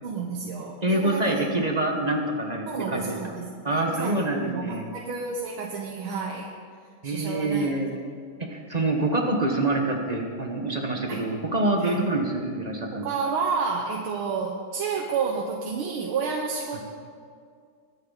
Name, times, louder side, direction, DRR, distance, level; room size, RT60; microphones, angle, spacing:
voice 1, 0.0-1.4 1.9-2.0 2.7-6.5 7.0-7.7 11.1-11.2 11.8-12.0 12.9-16.8, right 5 dB, 85° right, 0 dB, 1.9 m, -30 dB
voice 2, 0.8-3.4 3.6-4.9 7.0-7.9 8.5-13.1 16.7-16.8, right 2 dB, 25° right, 1 dB, 1.1 m, -26 dB
22.0 x 9.7 x 4.1 m, 2.2 s
omnidirectional pair, 2.3 m